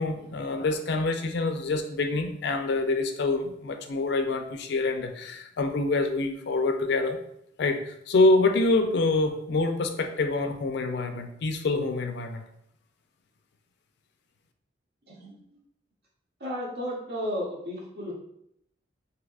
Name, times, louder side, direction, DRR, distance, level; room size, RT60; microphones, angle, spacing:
voice 1, 0.0-7.2 7.6-12.4, left 3 dB, 65° left, 6 dB, 0.4 m, -26 dB
voice 2, 15.1-15.4 16.4-18.1, equal, 60° right, -3 dB, 0.9 m, -33 dB
3.4 x 2.7 x 2.4 m, 0.75 s
head